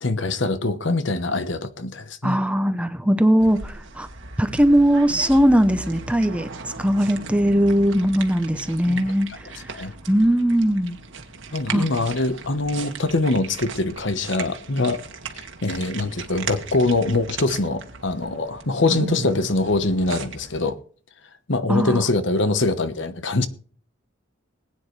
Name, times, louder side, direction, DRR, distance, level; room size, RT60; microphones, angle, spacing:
voice 1, 0.0-2.4 8.9-9.0 9.7-9.9 11.5-15.0 15.4-20.8 21.5-23.5, left 2 dB, 65° left, 1.1 m, -23 dB
voice 2, 2.2-4.1 4.4-11.0 11.7-11.8 21.7-22.0, equal, 5° right, 0.8 m, -20 dB
cats feeding, 3.4-20.7, right 3 dB, 70° right, 1.8 m, -37 dB
20.5 x 9.5 x 3.3 m
head